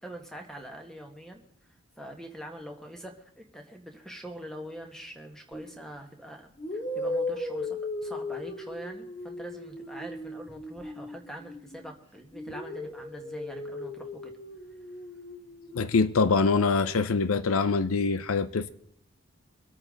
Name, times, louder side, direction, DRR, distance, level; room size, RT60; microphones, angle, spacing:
voice 1, 0.0-1.4 2.0-14.3, equal, ahead, 1.8 m, -44 dB
sound 1, 5.5-5.8 6.6-11.9 12.3-16.3, left 2 dB, 30° left, 3.1 m, -37 dB
voice 2, 15.7-18.7, left 4 dB, 90° left, 0.6 m, -24 dB
25.0 x 8.9 x 3.9 m
head